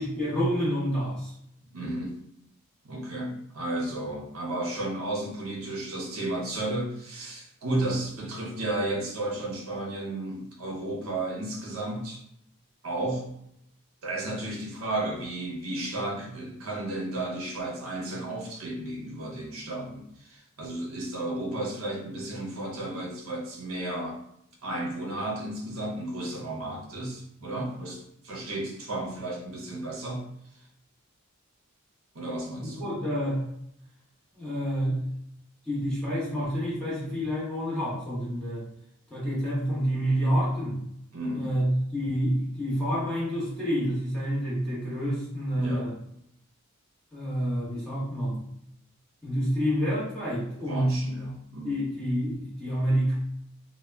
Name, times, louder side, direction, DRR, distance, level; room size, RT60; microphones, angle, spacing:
voice 1, 0.0-1.3 32.6-33.5 34.3-35.0 35.7-38.6 39.1-40.8 41.3-45.9 47.1-48.4 49.2-50.9 51.6-53.1, equal, 5° left, -8 dB, 0.9 m, -28 dB
voice 2, 1.7-2.2 2.8-12.2 12.8-13.3 14.0-24.2 24.6-30.3 32.1-32.9 41.1-41.5 45.5-45.9 50.6-51.8, right 1 dB, 70° right, -1 dB, 0.6 m, -33 dB
2.1 x 2.1 x 3.2 m, 0.74 s
head